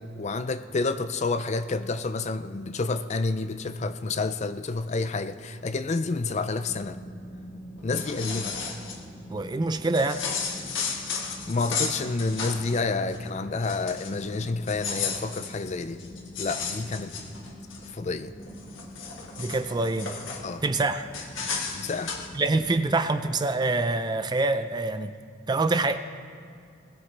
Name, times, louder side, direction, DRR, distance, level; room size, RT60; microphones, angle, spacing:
voice 1, 0.2-7.0 7.8-8.6 11.5-16.0 16.4-17.1 17.9-18.4 20.4-20.6 21.7-22.1, left 3 dB, 35° left, 11 dB, 0.4 m, -29 dB
sound 1, 6.6-22.9, equal, 5° left, 2.6 m, -45 dB
sound 2, 7.8-9.0 9.9-12.8 13.1-13.3 13.6-14.2 14.6-17.9 18.4-20.4 21.1-22.3, left 6 dB, 70° left, 1.6 m, -34 dB
voice 2, 9.3-10.3 19.4-20.1 20.6-21.1 22.3-25.2 25.5-26.0, right 2 dB, 20° right, 10 dB, 0.4 m, -25 dB
21.0 x 14.5 x 3.3 m, 2.4 s
head